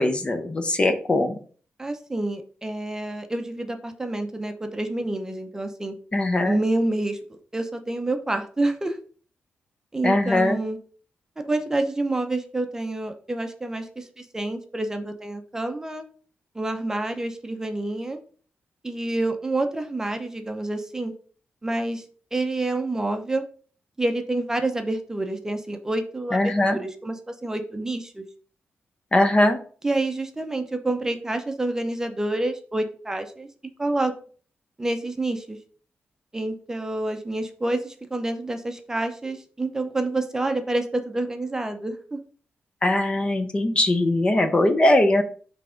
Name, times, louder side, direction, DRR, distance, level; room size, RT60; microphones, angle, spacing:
voice 1, 0.0-1.4 6.1-6.6 10.0-10.6 26.3-26.8 29.1-29.6 42.8-45.2, left 1 dB, 25° left, 8 dB, 0.6 m, -20 dB
voice 2, 1.8-5.9 6.4-9.0 9.9-10.8 11.4-16.0 16.5-18.2 18.8-21.1 21.6-22.0 22.3-23.4 24.0-28.2 29.8-33.5 33.8-34.1 34.8-35.6 36.3-42.2, right 2 dB, 15° right, 6 dB, 0.6 m, -28 dB
5.8 x 3.4 x 5.0 m, 0.43 s
wide cardioid pair, 145°, 4 cm